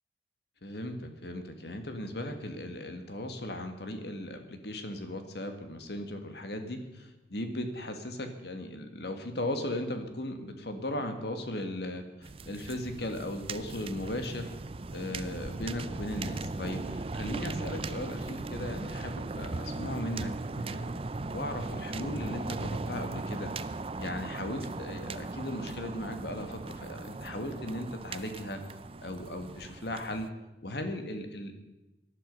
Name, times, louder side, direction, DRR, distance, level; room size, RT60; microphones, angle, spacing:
voice 1, 0.6-14.5 14.9-20.3 20.6-21.0 21.3-28.6 29.0-30.3 30.6-31.5, left 1 dB, 60° left, 6 dB, 1.8 m, -37 dB
sound 1, 12.2-30.3, right 3 dB, 30° right, 0.5 m, -38 dB
18.0 x 11.5 x 5.4 m, 1.0 s
head